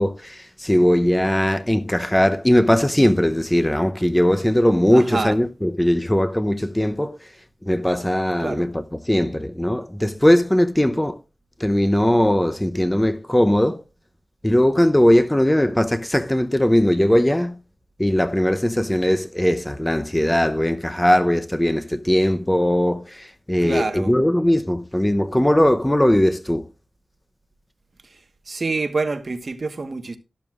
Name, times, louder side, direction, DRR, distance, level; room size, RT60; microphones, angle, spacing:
voice 1, 0.0-7.2 7.6-11.2 11.6-13.8 14.4-17.6 18.0-26.6, left 1 dB, 10° left, 0.7 m, -19 dB
voice 2, 4.9-5.4 8.4-8.7 23.6-24.1 28.5-30.2, right 3 dB, 55° right, 1.2 m, -26 dB
12.5 x 12.0 x 2.4 m
wide cardioid pair, 110°, 0 cm